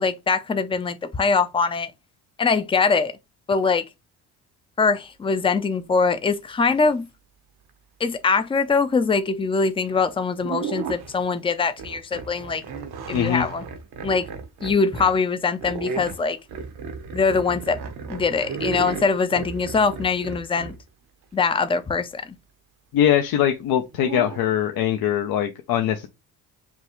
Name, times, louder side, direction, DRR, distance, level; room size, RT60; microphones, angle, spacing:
voice 1, 0.0-1.9 2.4-3.2 3.5-3.9 4.8-7.1 8.0-12.6 13.1-13.6 14.0-14.3 14.6-16.4 17.1-17.8 18.1-20.8 21.3-22.4, left 4 dB, 15° left, 0.5 m, -22 dB
sound 1, 9.9-10.0 10.4-11.3 11.8-15.2 15.6-20.8 23.9-24.4, right 5 dB, 70° right, 1.0 m, -34 dB
voice 2, 13.1-13.5 22.9-26.1, left 10 dB, 65° left, 0.7 m, -22 dB
5.4 x 2.3 x 3.0 m
supercardioid pair, 80°, 39 cm